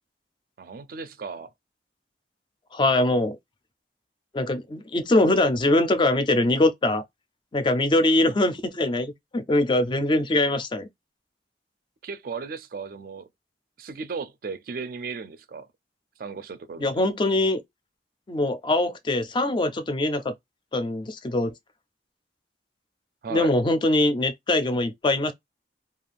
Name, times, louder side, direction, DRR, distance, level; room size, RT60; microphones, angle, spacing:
voice 1, 0.6-1.5 12.0-13.3 13.8-15.7 16.2-16.9 23.2-23.5, right 5 dB, 50° right, 0.4 m, -35 dB
voice 2, 2.7-3.4 4.3-7.0 7.5-10.9 16.8-17.6 18.3-20.3 20.7-21.5 23.3-25.3, left 2 dB, 25° left, 0.4 m, -22 dB
2.4 x 2.3 x 3.2 m
head